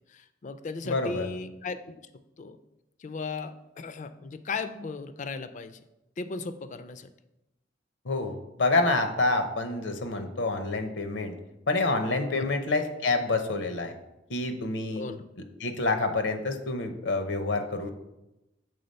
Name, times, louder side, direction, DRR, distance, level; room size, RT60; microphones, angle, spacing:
voice 1, 0.1-1.8 2.4-2.6 3.0-5.8 6.2-7.1 12.3-12.5 15.0-15.2, left 4 dB, 45° left, 11 dB, 0.4 m, -36 dB
voice 2, 0.8-1.3 8.0-11.3 11.7-13.9 14.3-15.1 15.6-17.9, left 3 dB, 80° left, 7 dB, 0.7 m, -27 dB
6.8 x 3.6 x 5.3 m, 0.94 s
head